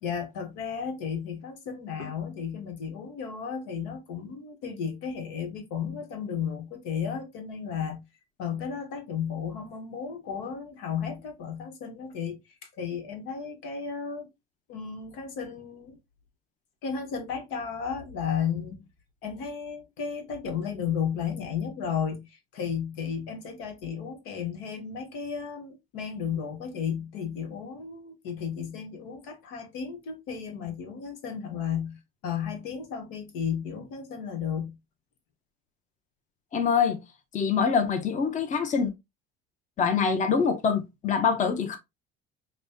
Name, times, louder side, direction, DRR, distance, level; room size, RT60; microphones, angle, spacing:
voice 1, 0.0-8.0 8.4-14.3 14.7-16.0 16.8-18.9 19.2-34.8, left 7 dB, 85° left, 1.1 m, -34 dB
voice 2, 36.5-37.0 37.3-38.9 39.8-41.8, left 6 dB, 35° left, 0.8 m, -24 dB
5.3 x 2.1 x 2.7 m
cardioid pair, 110°, 21 cm